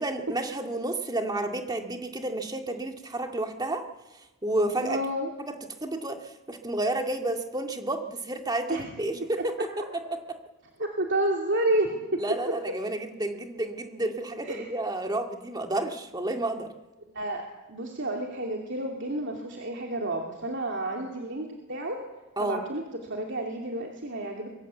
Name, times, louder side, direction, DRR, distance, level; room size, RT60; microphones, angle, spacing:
voice 1, 0.0-3.8 4.4-5.0 5.4-5.5 5.8-9.8 10.1-10.4 12.2-16.7 22.4-22.6, right 2 dB, 20° right, 4 dB, 2.1 m, -31 dB
voice 2, 4.8-5.3 8.7-8.8 10.8-12.0 14.4-14.7 17.1-17.4 17.7-22.0 22.4-22.8 23.1-24.5, right 1 dB, 60° right, 1 dB, 2.9 m, -30 dB
23.5 x 22.5 x 8.3 m, 1.1 s
head